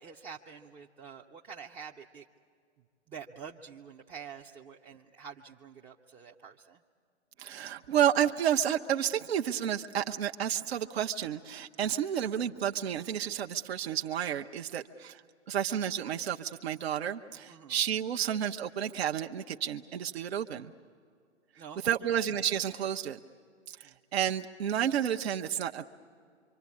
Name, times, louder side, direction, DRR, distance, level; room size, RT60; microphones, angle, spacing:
voice 1, 0.0-2.2 3.1-6.8 17.5-17.8 21.6-22.1 23.8-23.9, right 6 dB, 15° right, -2 dB, 0.6 m, -47 dB
voice 2, 7.4-15.2 15.5-20.7 21.6-23.2 23.8-25.9, right 10 dB, 60° right, 4 dB, 0.9 m, -31 dB
26.0 x 25.0 x 8.5 m, 2.2 s
figure-of-eight pair, 120°, 35 cm